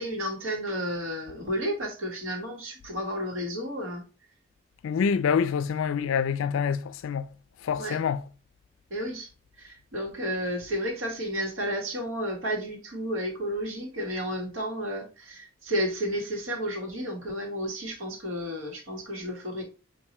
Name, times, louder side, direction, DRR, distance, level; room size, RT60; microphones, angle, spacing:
voice 1, 0.0-4.0 7.8-8.0 8.9-9.3 9.6-19.6, equal, 85° right, 1.4 m, -32 dB
voice 2, 4.8-7.3 7.6-8.2, left 6 dB, 85° left, 0.3 m, -26 dB
5.4 x 2.6 x 2.9 m
head